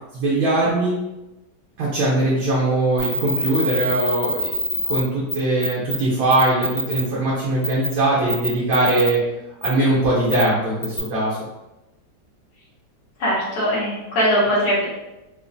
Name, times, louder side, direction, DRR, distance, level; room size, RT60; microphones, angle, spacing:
voice 1, 0.1-1.0 1.8-4.5 4.9-9.2 9.6-11.4, right 2 dB, 60° right, -6 dB, 1.1 m, -21 dB
sound 1, 3.0-5.0 5.3-5.4 5.6-6.0 6.3-7.0 7.6-7.9 8.3-9.1 9.6-9.7 10.3-10.4 10.8-11.0, left 1 dB, 40° left, 0.9 m, -24 dB
voice 2, 13.2-14.8, equal, 65° left, -6 dB, 1.4 m, -20 dB
5.0 x 2.0 x 2.6 m, 1.0 s
omnidirectional pair, 1.9 m